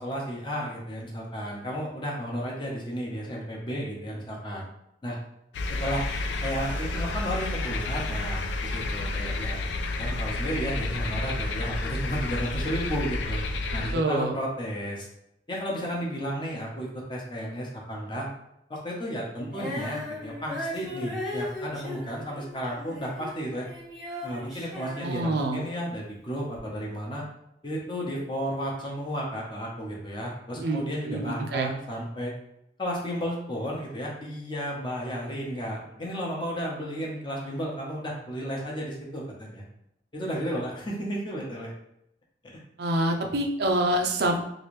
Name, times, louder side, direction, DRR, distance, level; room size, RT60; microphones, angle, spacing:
voice 1, 0.0-4.6 5.0-5.2 5.8-6.0 6.4-9.7 10.0-13.4 13.7-15.1 15.5-18.3 18.7-23.7 24.2-27.2 27.6-32.3 32.8-39.6 40.1-41.7 42.4-42.6, equal, 25° left, -3 dB, 0.8 m, -33 dB
sound 1, 5.5-13.9, left 2 dB, 75° left, 0.4 m, -30 dB
voice 2, 13.9-14.3 25.0-25.6 30.6-31.7 42.8-44.4, right 1 dB, 60° right, 2 dB, 0.5 m, -26 dB
Female singing, 19.5-25.9 26.5-26.6, left 1 dB, ahead, 1.0 m, -37 dB
3.1 x 2.5 x 3.1 m, 0.79 s
head